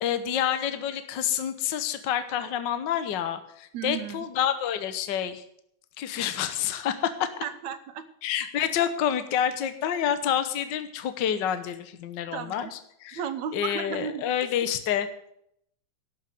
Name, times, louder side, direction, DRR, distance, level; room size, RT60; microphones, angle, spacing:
voice 1, 0.0-5.4 6.0-7.4 8.2-13.2 13.5-15.1, left 9 dB, 70° left, 10 dB, 1.0 m, -28 dB
voice 2, 3.7-4.3 7.4-8.0 12.3-12.7 13.1-14.2, right 8 dB, 75° right, 10 dB, 2.3 m, -34 dB
12.5 x 7.4 x 8.3 m, 0.70 s
omnidirectional pair, 3.3 m